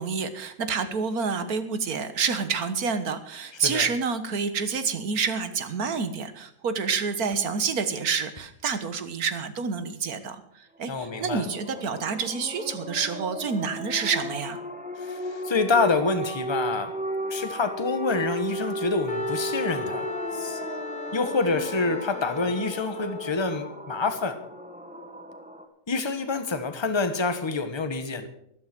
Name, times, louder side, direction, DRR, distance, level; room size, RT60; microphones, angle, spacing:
voice 1, 0.0-14.6, right 5 dB, 85° right, 10 dB, 1.8 m, -28 dB
voice 2, 10.9-11.4 15.0-16.9 17.3-20.1 20.3-20.6 21.1-24.4 25.9-28.3, left 3 dB, 20° left, 8 dB, 1.3 m, -27 dB
sound 1, 11.0-25.6, right 1 dB, 5° right, 1.3 m, -35 dB
Wind instrument woodwind instrument, 19.1-23.7, left 4 dB, 40° left, 1.5 m, -36 dB
13.0 x 12.5 x 6.0 m, 0.74 s
omnidirectional pair, 1.5 m